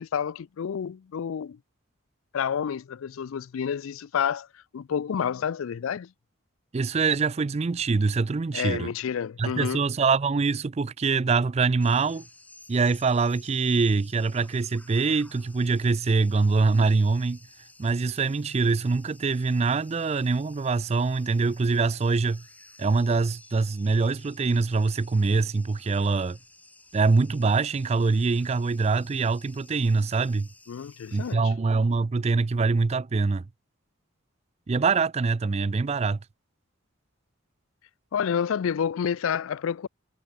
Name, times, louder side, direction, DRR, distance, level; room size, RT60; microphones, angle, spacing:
voice 1, 0.0-1.6 2.3-4.5 4.7-6.1 8.5-9.8 30.7-31.5 38.1-39.9, left 7 dB, 75° left, 0.4 m, -29 dB
voice 2, 6.7-8.9 9.4-12.3 12.7-17.4 17.8-22.4 22.8-26.4 26.9-30.5 31.1-33.4 34.7-36.2, right 4 dB, 30° right, 0.4 m, -24 dB
sound 1, 11.8-31.4, left 2 dB, 5° left, 1.5 m, -54 dB
head